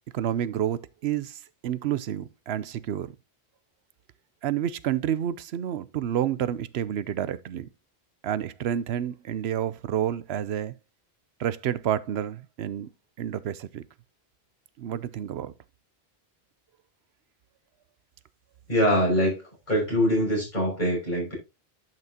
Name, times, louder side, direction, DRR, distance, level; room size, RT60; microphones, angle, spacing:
voice 1, 0.1-3.1 4.4-7.7 8.2-10.7 11.4-12.9 13.2-13.8 14.8-15.5, right 10 dB, 85° right, 0.9 m, -29 dB
voice 2, 18.7-19.4 19.7-21.3, equal, 45° left, 6.2 m, -23 dB
10.5 x 6.0 x 2.8 m
omnidirectional pair, 1.1 m